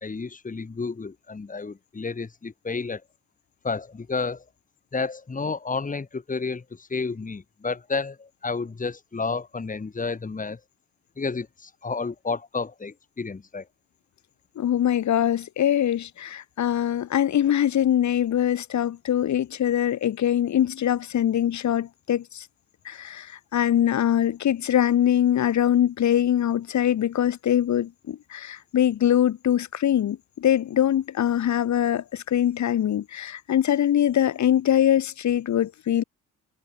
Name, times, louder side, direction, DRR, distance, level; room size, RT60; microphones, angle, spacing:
voice 1, 0.0-3.0 3.6-4.4 4.9-10.6 11.2-13.6, left 4 dB, 25° left, 3.8 m, -31 dB
voice 2, 14.6-22.5 22.8-36.0, left 10 dB, 70° left, 6.2 m, -23 dB
cardioid pair, 90°, 30 cm